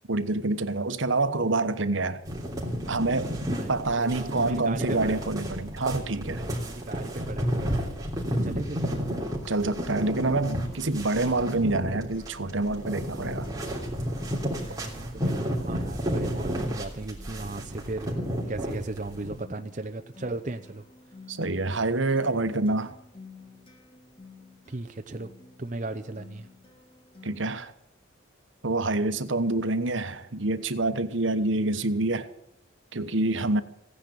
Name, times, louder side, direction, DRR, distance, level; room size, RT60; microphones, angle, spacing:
voice 1, 0.1-2.2 2.9-3.3 3.7-6.4 8.4-8.6 9.5-13.5 21.3-22.9 27.2-27.7 28.6-32.3 32.9-33.6, right 2 dB, 75° right, 1.2 m, -27 dB
sound 1, 2.3-19.4, equal, 20° right, 3.2 m, -32 dB
voice 2, 3.4-5.3 6.6-8.9 14.6-18.2 18.5-20.8 24.7-25.3 25.6-26.5, right 2 dB, 40° right, 0.7 m, -37 dB
Acoustic guitar, 11.4-27.4, left 4 dB, 25° left, 3.1 m, -51 dB
16.5 x 10.0 x 8.4 m
head